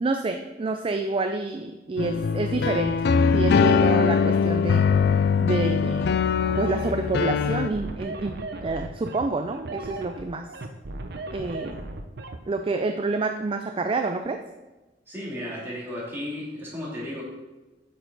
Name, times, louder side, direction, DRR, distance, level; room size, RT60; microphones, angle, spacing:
voice 1, 0.0-3.1 3.3-4.8 5.4-6.2 6.6-8.4 8.6-10.5 11.3-11.8 12.5-14.4, right 3 dB, 30° right, 6 dB, 0.4 m, -28 dB
sound 1, 2.0-7.7, left 5 dB, 60° left, 0.4 m, -22 dB
sound 2, 6.4-12.4, right 2 dB, 60° right, 0.7 m, -36 dB
voice 2, 15.1-17.2, left 1 dB, 15° right, -8 dB, 3.1 m, -34 dB
8.8 x 6.9 x 3.9 m, 1.1 s
head